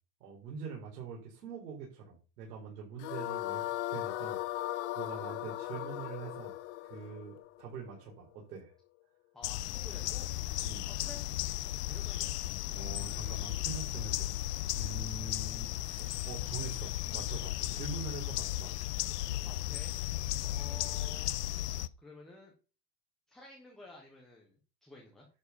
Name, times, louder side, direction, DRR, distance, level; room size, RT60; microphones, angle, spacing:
voice 1, 0.2-3.6 3.9-6.5 6.8-8.7 10.6-10.9 11.7-12.1 12.7-14.5 14.7-18.8, right 5 dB, 85° right, -2 dB, 4.2 m, -44 dB
sound 1, 3.0-8.2, left 15 dB, 45° left, 1.1 m, -38 dB
voice 2, 9.3-10.3 10.9-11.3 11.9-12.4 19.5-19.9 20.4-22.5 23.3-25.3, left 2 dB, ahead, -1 dB, 0.4 m, -52 dB
sound 2, 9.4-21.9, left 14 dB, 75° left, 0.7 m, -35 dB
11.0 x 4.6 x 7.0 m, 0.35 s
supercardioid pair, 170°, 47 cm